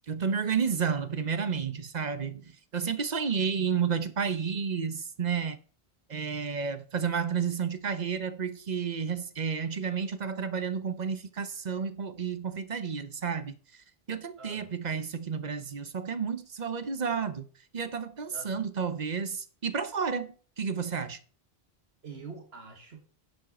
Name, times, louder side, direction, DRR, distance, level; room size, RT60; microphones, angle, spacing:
voice 1, 0.1-5.6 6.1-17.5 17.7-21.2, right 6 dB, 45° right, 0.9 m, -31 dB
voice 2, 14.4-14.7 18.3-18.5 22.0-23.0, right 4 dB, 75° right, 1.7 m, -45 dB
10.5 x 7.4 x 4.2 m
omnidirectional pair, 1.1 m